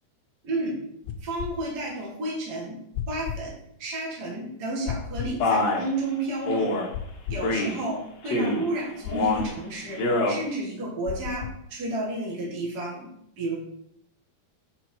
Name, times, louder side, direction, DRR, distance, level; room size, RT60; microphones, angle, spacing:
voice 1, 0.4-0.8 1.2-2.8 3.1-6.7 7.3-13.1 13.4-13.6, right 2 dB, 35° right, -3 dB, 1.6 m, -31 dB
sound 1, 1.0-1.5 2.9-3.4 4.9-5.4 6.9-7.5 9.0-9.5 11.1-11.6, left 8 dB, 80° left, 2.6 m, -33 dB
Male speech man speaking, 5.4-5.9 6.5-6.9 7.4-7.8 8.2-8.7 9.1-9.5 9.9-10.4, left 2 dB, 55° left, 1.9 m, -25 dB
8.5 x 5.1 x 4.6 m, 0.73 s
omnidirectional pair, 4.7 m